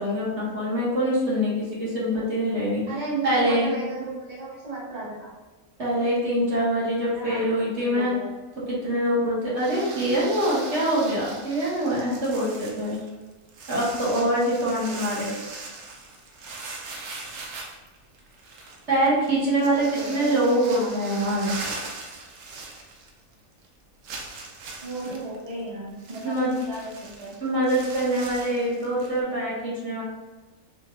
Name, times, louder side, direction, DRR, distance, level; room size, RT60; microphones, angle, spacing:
voice 1, 0.0-2.8 3.2-3.7 5.8-8.1 8.7-13.0 13.7-15.5 18.9-21.6 26.2-26.5 27.4-30.0, right 1 dB, 55° right, -7 dB, 1.4 m, -24 dB
voice 2, 2.9-5.3 7.1-8.3 19.6-21.6 24.8-26.4 26.7-27.3, right 3 dB, 30° right, -7 dB, 1.0 m, -35 dB
sound 1, 9.6-23.3 23.6-23.7 24.0-29.2, right 3 dB, 85° right, 1.1 m, -40 dB
5.1 x 2.5 x 3.1 m, 1.2 s
omnidirectional pair, 1.5 m